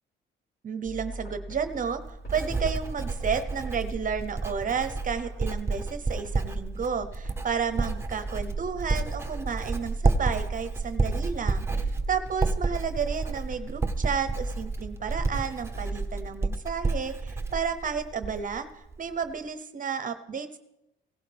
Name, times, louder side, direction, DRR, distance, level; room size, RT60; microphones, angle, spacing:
voice 1, 0.6-20.6, right 6 dB, 40° right, 10 dB, 0.8 m, -32 dB
sound 1, 0.8-18.5, right 1 dB, 60° left, 5.2 m, -41 dB
Writing, 1.5-18.6 18.9-19.3, right 3 dB, 10° right, 0.9 m, -30 dB
17.0 x 11.5 x 3.5 m, 0.89 s
cardioid pair, 90°, 20 cm